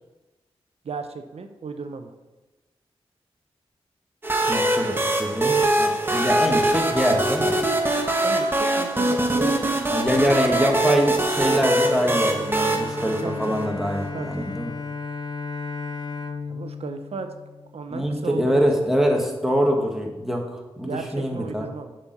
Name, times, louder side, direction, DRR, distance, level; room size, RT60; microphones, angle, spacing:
voice 1, 0.8-2.1 8.2-9.6 10.5-10.7 13.0-13.7 14.1-14.5 16.5-17.3 17.7-18.7 20.8-22.0, right 4 dB, 75° right, 7 dB, 0.7 m, -35 dB
sound 1, 4.2-13.9, right 1 dB, 20° right, 0.9 m, -23 dB
voice 2, 4.5-7.6 9.9-14.7 17.9-21.7, equal, 5° right, 0 dB, 1.5 m, -24 dB
Bowed string instrument, 12.0-18.2, left 4 dB, 45° left, 0.6 m, -35 dB
6.9 x 4.3 x 6.7 m, 1.1 s
cardioid pair, 65°, 11 cm